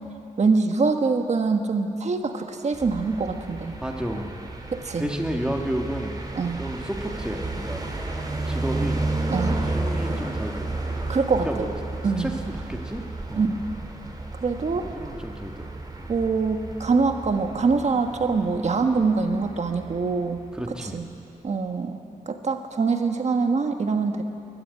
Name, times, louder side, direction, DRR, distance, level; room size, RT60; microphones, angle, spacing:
voice 1, 0.4-3.8 4.7-5.1 6.4-6.6 9.3-9.6 11.1-11.7 12.0-12.3 13.3-13.7 14.3-14.9 16.1-20.4 20.8-21.1 21.4-22.0 22.3-24.2, right 4 dB, 55° right, 5 dB, 1.5 m, -24 dB
sound 1, 2.7-20.7, right 2 dB, 30° right, 2.6 m, -32 dB
voice 2, 3.8-4.3 5.0-6.1 6.6-8.1 8.5-9.0 9.7-10.7 11.3-13.5 14.7-16.1 20.5-21.0, right 1 dB, 5° right, 1 dB, 2.1 m, -32 dB
21.0 x 12.5 x 9.9 m, 2.6 s
wide cardioid pair, 105°, 14 cm